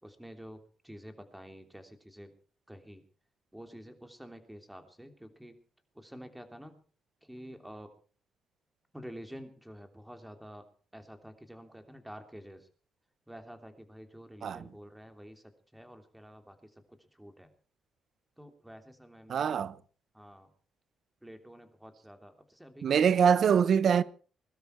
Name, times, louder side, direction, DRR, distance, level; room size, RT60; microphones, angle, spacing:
voice 1, 0.0-2.3 2.7-3.0 3.5-5.6 5.9-6.8 7.2-7.9 8.9-10.7 10.9-12.7 13.3-17.5 18.4-19.6 20.1-20.5 21.2-22.9, equal, 5° right, 3.1 m, -49 dB
voice 2, 19.3-19.7 22.8-24.0, right 7 dB, 60° right, 0.9 m, -24 dB
21.5 x 12.5 x 4.7 m
cardioid pair, 90°, 0 cm